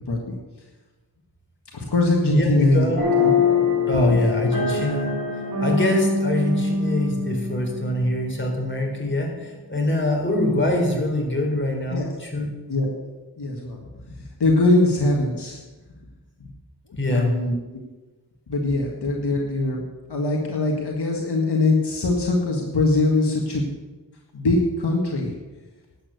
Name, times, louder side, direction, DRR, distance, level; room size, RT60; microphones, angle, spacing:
voice 1, 0.1-0.4 1.7-2.9 3.2-3.3 3.9-4.3 11.9-12.1 12.7-12.9 13.4-13.8 14.4-15.6 17.1-17.6 18.5-19.8 20.1-23.7 24.3-25.3, left 2 dB, 70° left, 0 dB, 1.8 m, -22 dB
voice 2, 2.3-3.0 3.9-5.2 5.6-12.5 17.0-17.3, left 1 dB, 30° left, 0 dB, 4.0 m, -24 dB
sound 1, 3.0-8.4, left 4 dB, 50° right, 2.8 m, -23 dB
11.5 x 8.7 x 6.6 m, 1.2 s
cardioid pair, 55°, 41 cm